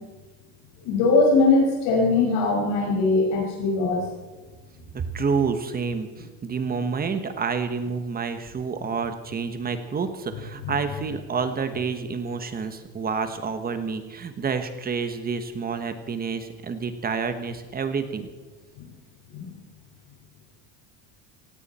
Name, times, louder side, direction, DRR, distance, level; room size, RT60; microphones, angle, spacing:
voice 1, 0.8-4.0 10.6-10.7 18.8-18.9 19.3-19.6, left 3 dB, 65° left, -2 dB, 5.5 m, -21 dB
voice 2, 4.9-18.3, right 5 dB, 20° right, 9 dB, 1.2 m, -29 dB
17.0 x 17.0 x 4.3 m, 1.2 s
cardioid pair, 150°, 47 cm